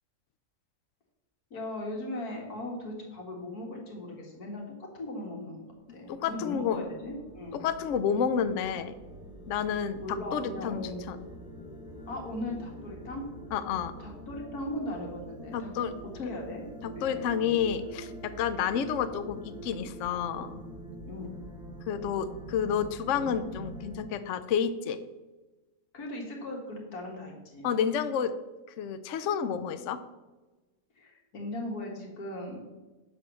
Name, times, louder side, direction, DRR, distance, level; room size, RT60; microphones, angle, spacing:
voice 1, 1.5-5.6 5.9-7.6 10.0-11.1 12.1-13.2 14.0-15.7 16.2-17.5 21.0-21.3 25.9-27.7 31.0-32.6, left 1 dB, 85° left, 0 dB, 2.2 m, -38 dB
sound 1, 5.9-24.0, right 1 dB, 5° right, 1.1 m, -45 dB
voice 2, 6.1-6.8 7.5-8.9 9.5-11.2 13.5-13.9 15.5-15.9 16.2-16.3 16.8-20.6 21.9-25.0 27.6-28.3 28.8-30.0, left 7 dB, 65° left, 11 dB, 0.9 m, -30 dB
11.0 x 3.7 x 7.0 m, 1.2 s
omnidirectional pair, 1.6 m